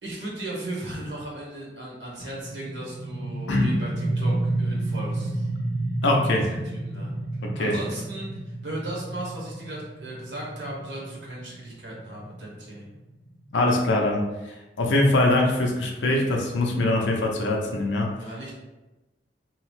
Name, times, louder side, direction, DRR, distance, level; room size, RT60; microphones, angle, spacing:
voice 1, 0.0-5.5 6.3-6.5 6.7-7.1 7.6-12.9 18.2-18.5, right 1 dB, 75° right, -5 dB, 1.0 m, -36 dB
sound 1, 2.2-13.6, right 2 dB, 55° right, 0.7 m, -31 dB
voice 2, 6.0-6.6 7.4-7.8 13.5-18.1, left 2 dB, 80° left, 0 dB, 0.5 m, -23 dB
2.9 x 2.0 x 3.0 m, 1.1 s
head